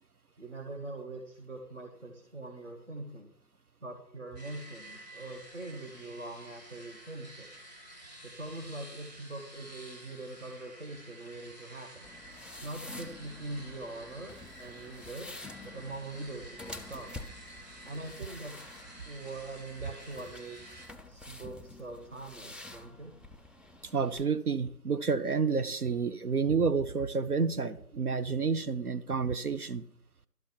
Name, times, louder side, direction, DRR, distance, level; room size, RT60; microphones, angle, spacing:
voice 1, 0.4-3.3 3.8-7.5 8.2-12.1 12.6-15.3 15.6-17.3 17.8-18.6 19.1-20.6 21.0-23.1, right 2 dB, 45° right, 3 dB, 1.1 m, -43 dB
sound 1, 4.4-20.9, right 1 dB, 25° right, 2.1 m, -51 dB
sound 2, 12.0-24.2, left 2 dB, ahead, 0.4 m, -49 dB
voice 2, 23.9-29.8, right 5 dB, 65° right, 11 dB, 0.7 m, -29 dB
12.0 x 5.0 x 7.2 m, 0.67 s
figure-of-eight pair, 175°, 49 cm